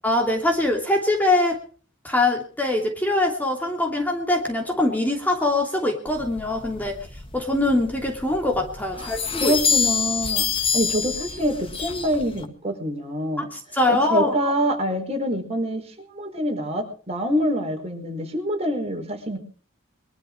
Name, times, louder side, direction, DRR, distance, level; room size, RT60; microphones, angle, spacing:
voice 1, 0.0-1.6 2.0-6.9 7.3-9.5 13.5-14.5, left 2 dB, 10° left, 1 dB, 2.9 m, -23 dB
sound 1, 6.1-12.5, left 6 dB, 25° left, 1.8 m, -27 dB
voice 2, 9.3-10.5 10.7-13.5 13.9-15.8 16.1-19.4, equal, 30° right, 4 dB, 5.0 m, -25 dB
23.0 x 12.5 x 4.8 m, 0.41 s
head